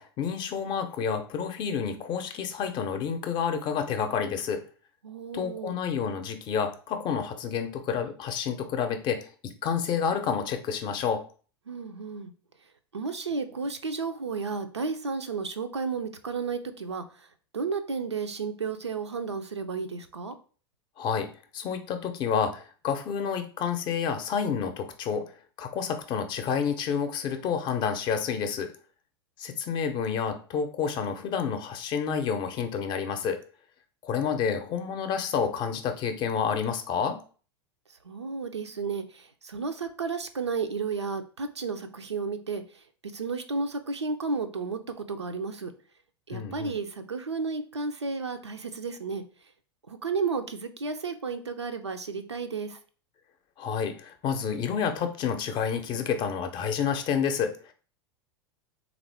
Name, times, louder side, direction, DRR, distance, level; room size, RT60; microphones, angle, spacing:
voice 1, 0.0-4.6 5.3-11.2 21.0-21.3 21.5-25.3 25.6-28.7 29.4-33.4 34.0-37.2 46.3-46.8 53.6-57.7, left 7 dB, 35° left, 7 dB, 0.6 m, -29 dB
voice 2, 5.0-5.8 11.7-12.3 12.9-17.0 17.5-20.3 38.0-42.6 43.1-44.8 45.1-45.7 46.3-49.2 49.9-52.8, right 4 dB, 85° right, 8 dB, 0.4 m, -32 dB
3.5 x 2.5 x 3.3 m, 0.40 s
figure-of-eight pair, 85°, 14 cm